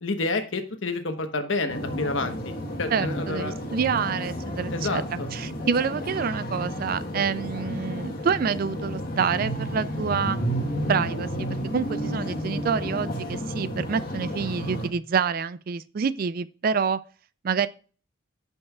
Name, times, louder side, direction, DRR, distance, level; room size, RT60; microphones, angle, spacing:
voice 1, 0.0-2.5 2.8-3.5 4.7-5.3, left 3 dB, 70° left, 1.1 m, -29 dB
sound 1, 1.7-14.9, equal, 45° left, 1.3 m, -31 dB
voice 2, 2.9-5.0 5.3-10.4 10.9-17.0 17.4-17.7, right 6 dB, 45° right, 0.3 m, -27 dB
15.0 x 5.4 x 2.3 m
head